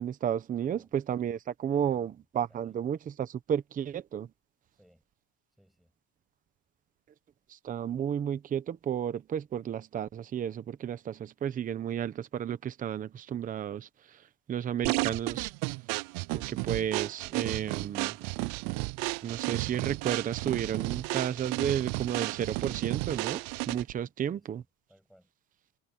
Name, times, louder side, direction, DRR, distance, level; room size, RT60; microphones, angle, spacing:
voice 1, 0.0-4.3 7.5-14.2 14.5-15.5 16.3-18.2 19.2-24.6, right 9 dB, 20° right, 0.9 m, -32 dB
voice 2, 1.7-2.1 2.5-2.8 4.7-5.1 5.6-5.9 23.9-24.6 24.9-25.3, equal, ahead, 7.9 m, -62 dB
sound 1, 14.8-24.0, right 26 dB, 50° right, 0.4 m, -33 dB
cardioid pair, 160°, 39 cm